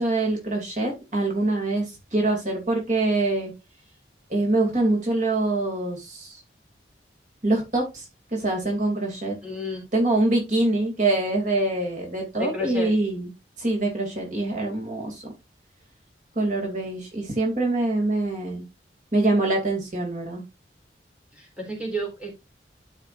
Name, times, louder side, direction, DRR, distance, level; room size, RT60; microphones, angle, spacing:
voice 1, 0.0-3.5 4.3-6.4 7.4-8.0 8.3-9.3 9.9-13.3 13.6-15.2 16.4-18.6 19.1-20.4, right 2 dB, 45° right, 0 dB, 2.8 m, -24 dB
voice 2, 9.4-9.8 12.4-12.9 21.3-22.3, equal, 5° right, -1 dB, 3.8 m, -31 dB
13.0 x 5.7 x 2.6 m, 0.23 s
head